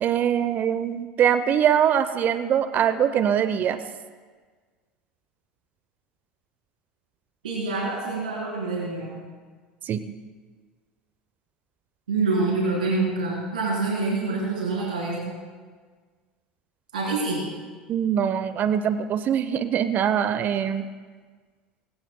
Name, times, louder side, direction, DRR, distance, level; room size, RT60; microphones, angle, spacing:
voice 1, 0.0-3.8 9.8-10.0 17.9-20.9, right 9 dB, 45° right, 12 dB, 0.7 m, -23 dB
voice 2, 7.4-9.2 12.1-15.3 16.9-17.4, right 3 dB, 80° right, -5 dB, 3.5 m, -26 dB
22.5 x 16.5 x 2.2 m, 1.5 s
hypercardioid pair, 70°, 4 cm